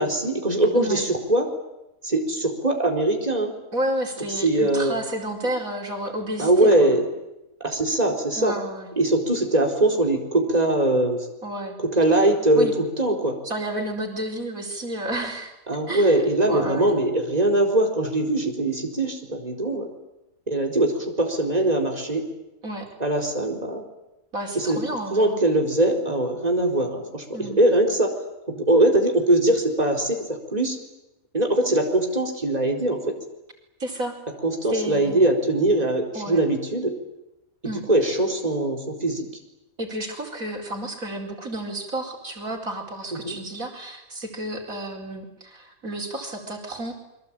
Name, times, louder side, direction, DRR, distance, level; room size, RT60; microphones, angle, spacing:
voice 1, 0.0-1.5 2.0-3.5 4.4-4.9 6.4-7.0 7.6-8.5 9.0-11.3 11.9-13.4 15.7-19.9 20.5-22.2 23.0-23.8 24.5-24.8 25.1-27.2 27.6-28.1 28.5-30.8 31.3-33.0 34.4-36.9 37.9-39.3 43.1-43.4, right 1 dB, 30° right, 2 dB, 4.5 m, -21 dB
voice 2, 3.7-7.0 8.4-8.9 11.4-11.8 12.6-12.7 13.4-15.5 15.9-16.2 16.5-16.9 22.6-22.9 24.3-25.4 27.3-27.6 33.8-34.1 34.7-35.3 36.1-36.4 37.6-37.8 39.8-46.9, right 1 dB, 75° right, 2 dB, 5.2 m, -31 dB
28.5 x 23.0 x 9.0 m, 0.91 s
omnidirectional pair, 1.5 m